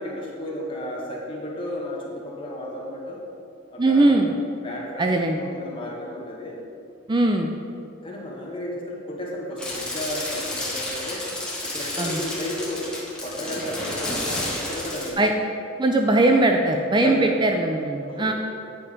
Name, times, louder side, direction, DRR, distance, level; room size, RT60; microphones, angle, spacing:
voice 1, 0.0-3.2 3.7-4.3 4.6-6.6 8.0-11.3 11.6-12.9 13.2-15.3 17.0-17.4 18.0-18.3, left 1 dB, 25° left, -4 dB, 1.9 m, -33 dB
voice 2, 3.8-4.3 5.0-5.5 7.1-7.5 12.0-12.2 15.2-15.3 15.8-18.3, right 2 dB, 20° right, 3 dB, 0.5 m, -20 dB
sound 1, 9.6-15.1, left 1 dB, 5° left, 1.8 m, -31 dB
9.4 x 7.5 x 5.2 m, 2.5 s
head